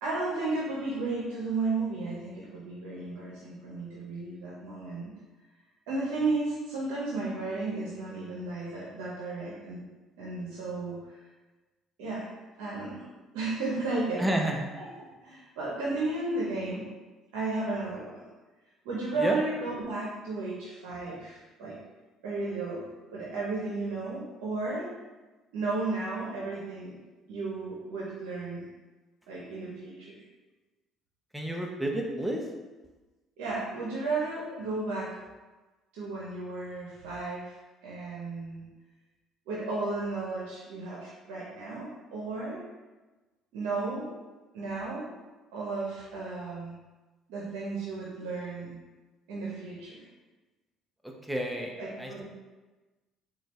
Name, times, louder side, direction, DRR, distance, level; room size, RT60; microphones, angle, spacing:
voice 1, 0.0-5.1 5.9-9.8 10.2-11.2 12.0-12.3 12.6-13.0 13.3-14.3 14.7-14.9 15.2-16.8 17.3-18.2 18.8-21.8 22.2-22.8 23.1-24.9 25.5-26.9 27.3-28.6 29.3-30.2 33.4-35.2 35.9-37.5 37.8-38.7 39.5-42.6 43.5-44.1 44.5-45.1 45.5-46.8 47.3-48.8 49.3-50.1 51.8-52.2, right 3 dB, 80° right, -6 dB, 0.7 m, -33 dB
voice 2, 14.2-14.6 19.2-19.4 31.3-32.4 51.3-51.7 52.0-52.2, right 1 dB, 5° right, 1 dB, 0.7 m, -30 dB
4.3 x 2.3 x 3.1 m, 1.2 s
supercardioid pair, 70°, 0 cm